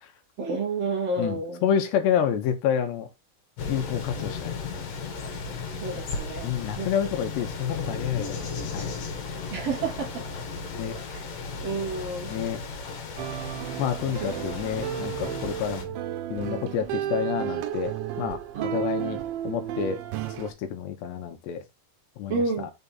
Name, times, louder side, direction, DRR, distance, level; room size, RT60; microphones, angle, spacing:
voice 1, 0.4-1.6 5.5-6.5 6.8-6.9 9.5-10.3 11.1-11.2 11.6-12.3 18.5-18.8 22.3-22.7, right 3 dB, 45° right, 2.3 m, -30 dB
voice 2, 1.2-3.1 3.7-4.6 6.4-8.4 8.7-8.9 10.7-10.9 12.3-12.6 13.8-15.9 16.3-20.0 20.4-21.6 22.2-22.7, left 8 dB, 75° left, 2.9 m, -29 dB
sound 1, 3.6-15.8, left 4 dB, 55° left, 3.2 m, -35 dB
sound 2, 13.2-20.5, right 11 dB, 80° right, 3.1 m, -32 dB
7.2 x 4.1 x 5.5 m
omnidirectional pair, 5.4 m